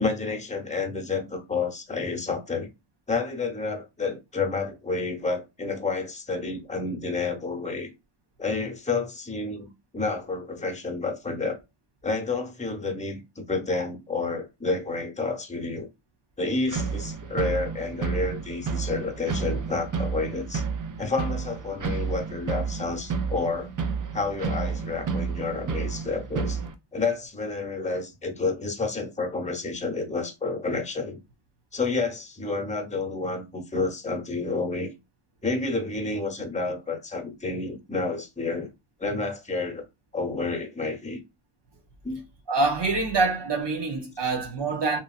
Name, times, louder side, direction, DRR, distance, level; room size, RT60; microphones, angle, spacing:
voice 1, 0.0-2.7 3.1-7.9 8.4-11.6 12.0-15.9 16.4-20.6 21.0-23.7 24.1-26.6 26.9-31.2 31.7-34.9 35.4-38.7 39.0-39.8 40.1-41.2 42.0-42.2, left 3 dB, 15° left, 0.8 m, -30 dB
sound 1, 16.7-26.7, right 5 dB, 40° right, 0.5 m, -31 dB
voice 2, 42.5-45.0, right 3 dB, 55° right, 0.8 m, -25 dB
2.9 x 2.6 x 2.4 m
wide cardioid pair, 55°, 49 cm